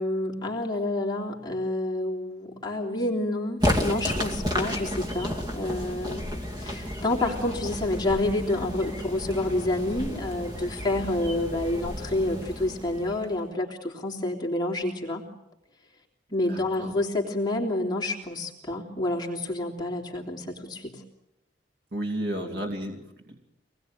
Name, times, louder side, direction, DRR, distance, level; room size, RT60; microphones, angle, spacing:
voice 1, 0.0-6.3 6.6-15.3 16.3-21.0 22.3-22.6, left 1 dB, 25° left, -1 dB, 3.3 m, -29 dB
sound 1, 3.6-13.4, equal, 25° right, 2.4 m, -32 dB
voice 2, 16.5-16.9 21.9-23.4, right 1 dB, 65° right, 2 dB, 2.9 m, -33 dB
26.0 x 20.0 x 9.3 m, 0.88 s
head